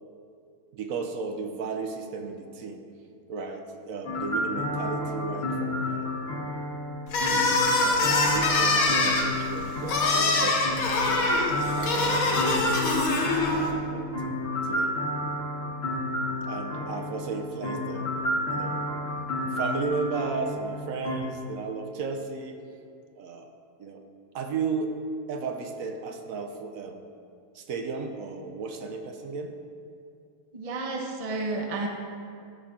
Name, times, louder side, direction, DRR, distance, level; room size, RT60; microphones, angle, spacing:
voice 1, 0.7-2.8 3.3-6.2 7.2-11.3 11.7-14.9 16.5-18.1 18.5-18.9 19.4-22.6 23.2-23.5 23.8-24.0 24.3-25.0 25.3-27.0 27.5-29.5, right 4 dB, 75° right, 4 dB, 1.1 m, -35 dB
sound 1, 4.0-21.2, left 1 dB, 50° left, 1.5 m, -31 dB
sound 2, 7.1-13.7, left 3 dB, 90° left, 1.4 m, -24 dB
voice 2, 30.5-31.9, right 3 dB, 30° right, 1 dB, 0.7 m, -31 dB
13.5 x 5.7 x 3.7 m, 2.4 s
omnidirectional pair, 1.5 m